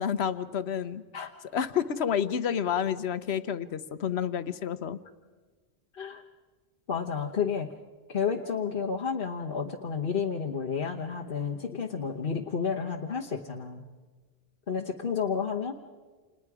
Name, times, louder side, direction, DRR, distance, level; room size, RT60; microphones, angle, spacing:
voice 1, 0.0-5.0, left 8 dB, 85° left, 13 dB, 1.1 m, -30 dB
voice 2, 6.9-7.7 8.1-13.8 14.7-15.7, left 6 dB, 60° left, -1 dB, 1.3 m, -31 dB
29.5 x 27.5 x 4.9 m, 1.4 s
omnidirectional pair, 1.0 m